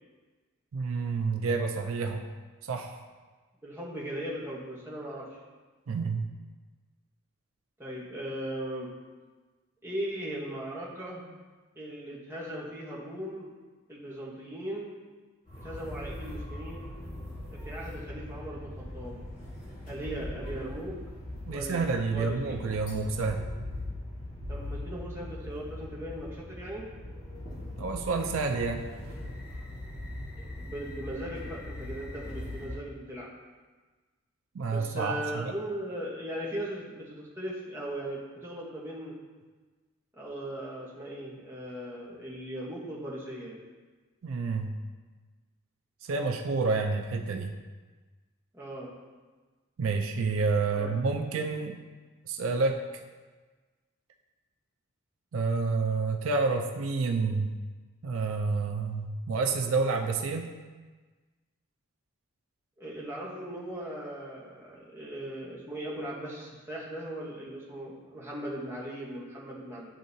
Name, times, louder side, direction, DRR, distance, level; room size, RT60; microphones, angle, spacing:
voice 1, 0.7-2.3 2.6-3.0 5.9-6.2 21.5-23.5 27.8-28.9 34.5-35.5 44.2-44.7 46.0-47.5 49.8-51.8 52.3-52.8 55.3-57.5 58.0-60.5, right 4 dB, 80° right, 4 dB, 0.5 m, -29 dB
voice 2, 3.6-5.4 7.8-8.9 9.8-11.3 11.8-13.5 13.9-14.9 15.6-16.9 17.5-19.2 19.9-21.0 21.5-22.6 24.5-26.9 30.4-33.3 34.7-39.1 40.2-43.6 48.5-48.9 50.7-50.9 62.8-69.9, right 1 dB, 10° right, -5 dB, 1.1 m, -38 dB
sound 1, 15.5-32.8, left 1 dB, 40° left, 1.7 m, -40 dB
10.5 x 3.7 x 2.7 m, 1.3 s
head